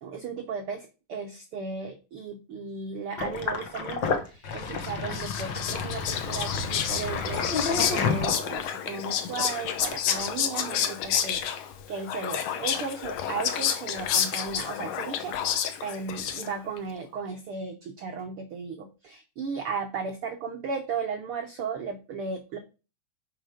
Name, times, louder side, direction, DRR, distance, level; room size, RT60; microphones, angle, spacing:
voice 1, 0.0-15.6 15.8-22.6, right 5 dB, 90° right, 4 dB, 1.2 m, -35 dB
Sink (filling or washing), 3.2-8.8, left 5 dB, 90° left, 1.0 m, -30 dB
Whispering, 4.8-16.8, left 9 dB, 75° left, 1.6 m, -30 dB
9.1 x 5.2 x 5.1 m, 0.32 s
omnidirectional pair, 4.0 m